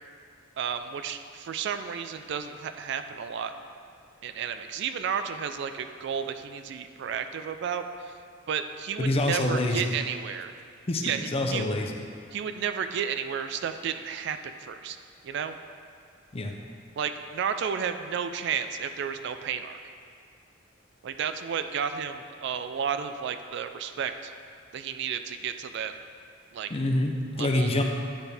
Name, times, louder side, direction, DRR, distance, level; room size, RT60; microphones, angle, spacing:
voice 1, 0.6-3.5 4.2-8.2 8.5-10.5 11.0-11.7 12.3-15.0 15.2-15.6 17.0-19.8 21.0-24.3 24.7-25.9 26.5-26.7 27.4-27.7, right 7 dB, 60° right, 9 dB, 0.3 m, -32 dB
voice 2, 9.0-9.9 10.9-12.0 16.3-16.5 26.7-27.8, left 1 dB, 30° left, 2 dB, 0.6 m, -26 dB
10.0 x 4.3 x 3.4 m, 2.2 s
head